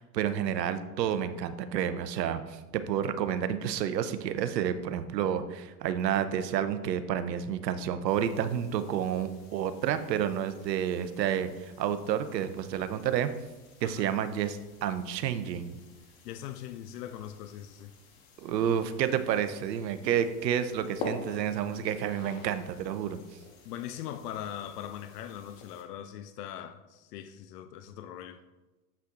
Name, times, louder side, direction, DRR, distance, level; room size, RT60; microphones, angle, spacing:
voice 1, 0.0-2.6 2.9-13.3 13.8-15.8 18.4-23.2, right 9 dB, 80° right, 0.7 m, -30 dB
sound 1, 8.1-25.8, left 3 dB, 55° left, 1.4 m, -48 dB
voice 2, 16.2-17.9 23.6-28.4, left 10 dB, 70° left, 0.6 m, -41 dB
8.1 x 5.7 x 2.5 m
hypercardioid pair, 105°, 49 cm